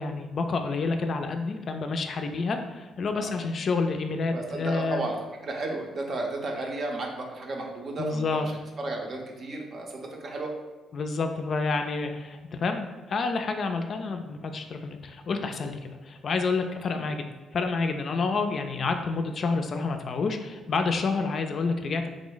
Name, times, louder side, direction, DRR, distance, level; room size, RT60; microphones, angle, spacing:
voice 1, 0.0-5.1 8.0-8.5 10.9-17.2 17.5-22.1, left 4 dB, 50° left, 5 dB, 0.3 m, -29 dB
voice 2, 4.3-5.1 5.4-8.4 8.8-10.5 16.9-17.1, right 2 dB, 50° right, 1 dB, 0.6 m, -33 dB
3.2 x 2.0 x 3.8 m, 1.3 s
cardioid pair, 90°, 0 cm